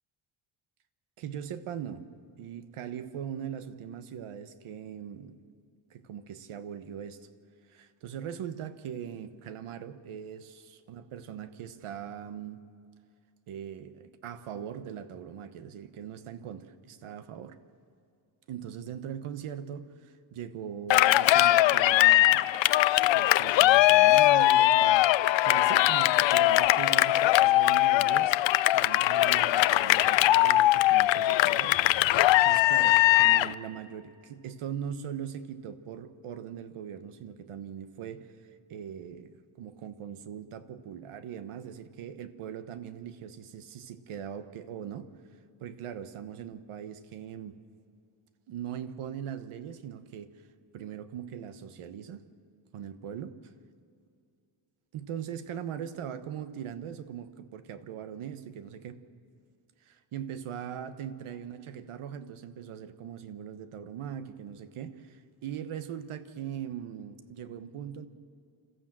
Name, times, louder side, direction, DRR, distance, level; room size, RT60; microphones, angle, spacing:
voice 1, 1.2-2.0 2.4-5.4 5.9-7.2 7.7-12.6 13.5-17.6 18.5-22.6 23.0-28.3 28.7-45.1 45.6-47.6 48.5-50.3 50.7-52.2 52.7-53.3 54.9-59.0 59.8-68.1, right 9 dB, 80° right, 11 dB, 1.3 m, -40 dB
Cheering, 20.9-33.5, left 15 dB, 65° left, 0.5 m, -21 dB
26.5 x 14.0 x 7.6 m, 2.3 s
cardioid pair, 150°, 49 cm